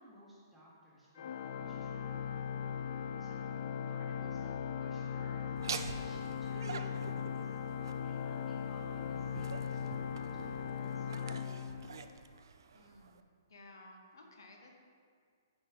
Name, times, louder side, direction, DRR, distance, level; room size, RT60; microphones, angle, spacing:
voice 1, 0.0-2.3 3.2-3.4 3.9-7.5 7.9-12.0, equal, 5° right, -7 dB, 1.6 m, -59 dB
Organ, 1.2-12.3, left 7 dB, 60° left, 0.3 m, -39 dB
Laughter, 5.6-13.2, right 6 dB, 75° right, 0.4 m, -46 dB
voice 2, 12.7-14.7, left 2 dB, 80° left, 1 dB, 1.3 m, -56 dB
9.7 x 4.3 x 4.0 m, 2.1 s
hypercardioid pair, 150°, 2 cm